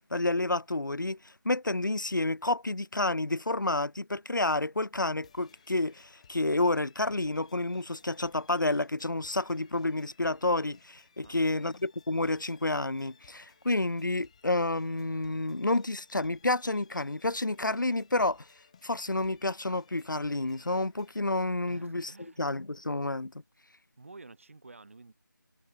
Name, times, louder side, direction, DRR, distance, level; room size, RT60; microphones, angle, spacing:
voice 1, 0.1-18.5 18.8-22.1 22.4-23.3, left 2 dB, 70° left, 0.8 m, -30 dB
sound 1, 5.2-21.2, left 7 dB, 20° left, 3.8 m, -61 dB
voice 2, 11.2-11.7 21.7-22.4 24.0-25.1, right 3 dB, 40° right, 6.4 m, -51 dB
figure-of-eight pair, 165°, 11 cm